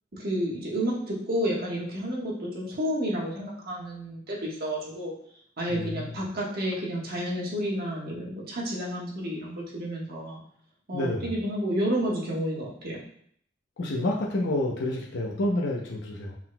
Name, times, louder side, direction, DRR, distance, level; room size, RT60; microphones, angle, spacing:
voice 1, 0.1-5.1 5.6-10.4 10.9-13.0, equal, 50° right, -4 dB, 1.3 m, -30 dB
voice 2, 5.7-6.1 10.9-11.3 13.8-16.3, left 1 dB, 60° left, -1 dB, 0.6 m, -29 dB
5.9 x 4.0 x 2.2 m, 0.64 s
head